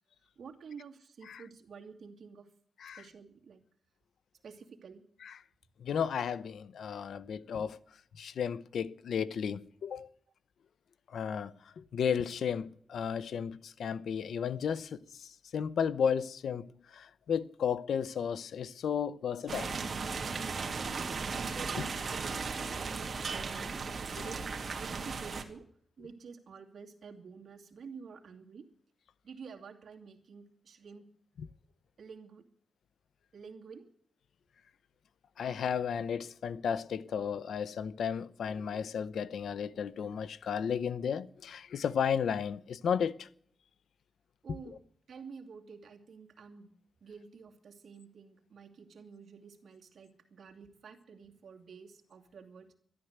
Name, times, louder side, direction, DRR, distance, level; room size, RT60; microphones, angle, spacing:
voice 1, 0.4-2.5 3.0-3.6 4.4-5.0 20.8-22.3 22.7-24.4 24.8-25.6 26.0-28.6 29.2-31.1 32.0-32.4 33.3-33.9 44.4-44.8 45.1-46.7 47.0-52.7, right 5 dB, 65° right, 2.4 m, -50 dB
voice 2, 5.8-7.8 8.2-10.1 11.1-19.8 21.7-21.8 31.4-31.5 35.4-43.3 44.7-44.8, left 7 dB, 85° left, 0.7 m, -34 dB
sound 1, 19.5-25.4, right 4 dB, 50° right, 2.1 m, -36 dB
13.0 x 11.5 x 8.0 m
wide cardioid pair, 110°, 0 cm